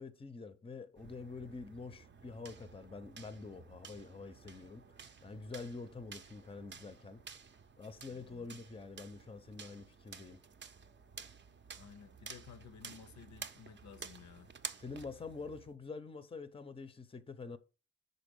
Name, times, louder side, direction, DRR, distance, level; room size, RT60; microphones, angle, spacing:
voice 1, 0.0-4.8 5.2-7.2 7.8-10.4 14.8-17.6, left 4 dB, 15° left, 0.6 m, -46 dB
sound 1, 1.0-15.7, right 6 dB, 35° right, 0.6 m, -52 dB
voice 2, 8.1-8.5 11.8-14.5, left 7 dB, 60° left, 0.6 m, -55 dB
5.2 x 4.0 x 5.2 m
cardioid pair, 65°, 32 cm